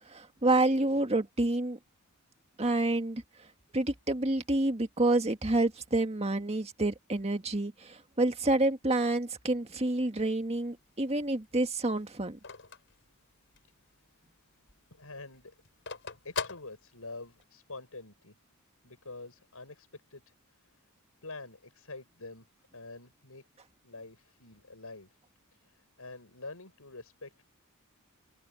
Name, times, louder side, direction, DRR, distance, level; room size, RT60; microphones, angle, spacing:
voice 1, 0.0-1.8 2.6-3.2 3.7-12.4, right 2 dB, 30° right, 1.8 m, -28 dB
Telephone, 10.4-13.8 14.2-14.3 14.6-17.4, left 5 dB, 55° left, 6.0 m, -41 dB
voice 2, 14.9-15.6 16.2-18.3 18.8-20.3 20.7-20.8 21.2-22.4 22.7-23.5 23.8-25.2 25.5-27.4, left 3 dB, 70° left, 7.8 m, -46 dB
head